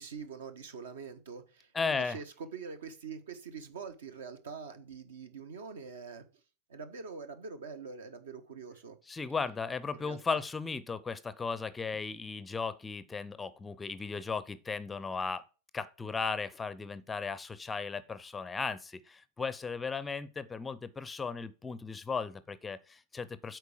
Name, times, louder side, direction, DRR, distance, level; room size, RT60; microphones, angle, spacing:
voice 1, 0.0-6.2 6.7-9.0 9.9-10.4, right 5 dB, 65° right, 1.2 m, -44 dB
voice 2, 1.7-2.2 9.1-15.5 15.7-23.6, left 5 dB, 15° left, 0.6 m, -36 dB
8.2 x 4.7 x 6.3 m
figure-of-eight pair, 90°, 0 cm